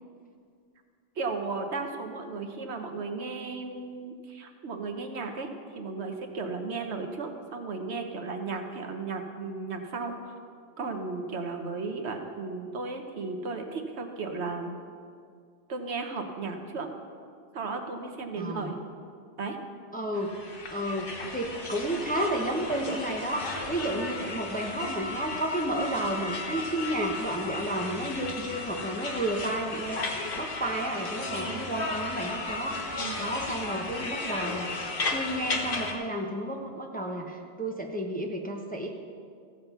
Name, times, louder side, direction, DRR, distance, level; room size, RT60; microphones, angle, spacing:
voice 1, 1.2-10.3 10.8-14.7 15.7-16.9 17.5-18.8 19.4-19.6 23.8-24.1 31.3-31.6 32.9-33.2, right 4 dB, 70° right, 5 dB, 1.3 m, -35 dB
voice 2, 18.4-18.7 19.9-20.3 20.7-30.0 30.3-38.9, right 1 dB, 10° left, 1 dB, 0.8 m, -32 dB
sound 1, 20.1-35.9, left 3 dB, 50° left, 1.3 m, -35 dB
15.0 x 7.6 x 5.6 m, 2.2 s
omnidirectional pair, 1.2 m